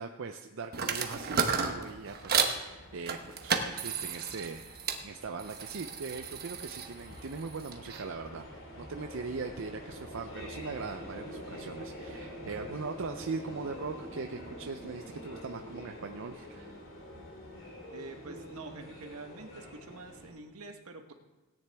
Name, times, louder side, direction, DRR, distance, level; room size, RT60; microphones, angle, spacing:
voice 1, 0.0-4.6 5.0-16.7, right 4 dB, 60° right, 6 dB, 0.5 m, -40 dB
sound 1, 0.7-2.6 3.1-5.0 5.4-8.0, right 6 dB, 45° right, 1.0 m, -33 dB
sound 2, 1.0-20.3, equal, 60° left, 3.0 m, -46 dB
voice 2, 17.9-21.1, right 3 dB, 80° right, 5 dB, 1.2 m, -46 dB
17.0 x 9.6 x 3.5 m, 1.1 s
head